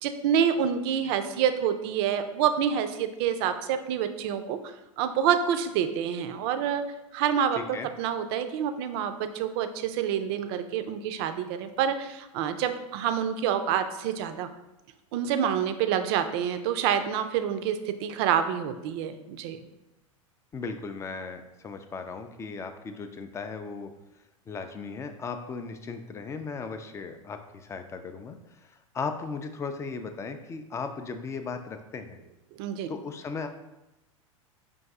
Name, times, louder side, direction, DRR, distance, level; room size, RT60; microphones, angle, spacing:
voice 1, 0.0-4.6 5.0-6.8 7.1-7.6 8.0-14.5 15.1-19.6 32.6-32.9, right 8 dB, 45° right, 9 dB, 0.5 m, -27 dB
voice 2, 7.5-7.9 20.5-23.9 24.5-32.2 32.9-33.5, left 4 dB, 15° left, 7 dB, 0.4 m, -37 dB
5.3 x 2.6 x 3.5 m, 0.97 s
figure-of-eight pair, 90°, 18 cm